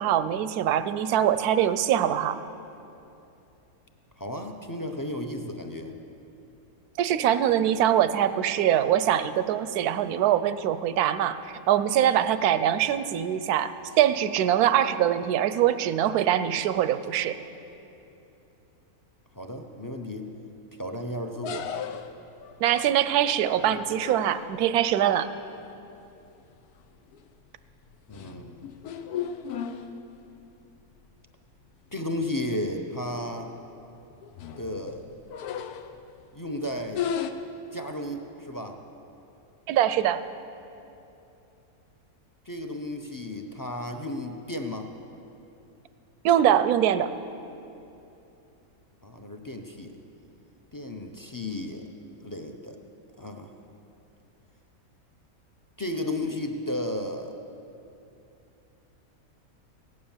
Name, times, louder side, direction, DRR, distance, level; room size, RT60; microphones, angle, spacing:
voice 1, 0.0-2.4 7.0-11.4 11.7-17.4 22.6-25.3 39.7-40.2 46.2-47.1, right 10 dB, 85° right, 13 dB, 1.1 m, -23 dB
voice 2, 4.2-5.9 19.3-20.3 20.8-21.7 28.1-28.7 31.9-33.5 34.6-35.0 36.3-37.0 37.7-38.8 42.5-44.9 49.0-50.0 50.7-51.8 52.2-52.8 53.2-53.5 55.8-57.3, left 1 dB, 25° left, 4 dB, 0.4 m, -33 dB
sound 1, 21.4-24.7 26.4-26.7 27.1-27.4 27.9-30.4 30.8-30.9 31.2-31.3 32.2-32.3 32.6-32.7 33.1-33.4 34.0-36.2 36.9-37.3, left 8 dB, 90° left, 1.2 m, -36 dB
16.5 x 9.6 x 7.2 m, 2.8 s
omnidirectional pair, 1.6 m